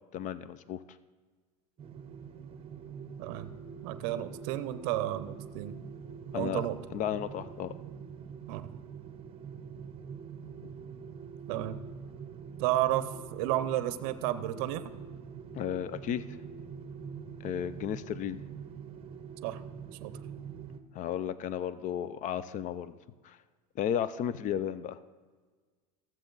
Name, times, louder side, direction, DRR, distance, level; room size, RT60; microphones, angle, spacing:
voice 1, 0.1-0.8 6.3-6.7 6.9-7.7 15.5-16.2 17.4-18.4 20.9-23.0 23.2-23.4 23.8-25.0, left 9 dB, 40° left, 15 dB, 0.5 m, -33 dB
sound 1, 1.8-20.8, right 6 dB, 25° right, 0.8 m, -44 dB
voice 2, 3.2-3.5 3.8-5.8 6.3-6.8 8.5-8.7 11.5-11.8 12.6-14.8 19.4-19.6 20.0-20.1, right 14 dB, 60° right, 13 dB, 0.7 m, -32 dB
14.0 x 7.3 x 3.9 m, 1.5 s
hypercardioid pair, 105°, 21 cm